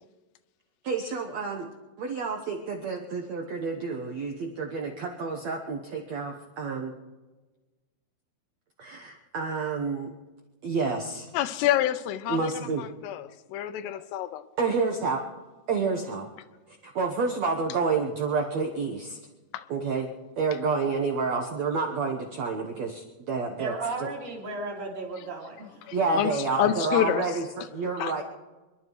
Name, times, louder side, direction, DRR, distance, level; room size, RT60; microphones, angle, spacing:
voice 1, 0.8-1.7 2.0-6.9 8.8-10.1 10.6-11.3 12.3-12.8 14.6-15.2 15.7-16.3 16.8-19.2 19.7-20.1 20.4-23.7 25.9-28.2, right 4 dB, 80° right, 2 dB, 1.5 m, -29 dB
voice 2, 11.3-12.5 12.8-14.4 19.5-19.7 25.8-27.2 28.0-28.2, left 11 dB, 80° left, 11 dB, 2.6 m, -28 dB
voice 3, 23.6-26.2, right 3 dB, 35° right, -3 dB, 2.4 m, -35 dB
26.0 x 11.5 x 4.7 m, 1.2 s
omnidirectional pair, 5.0 m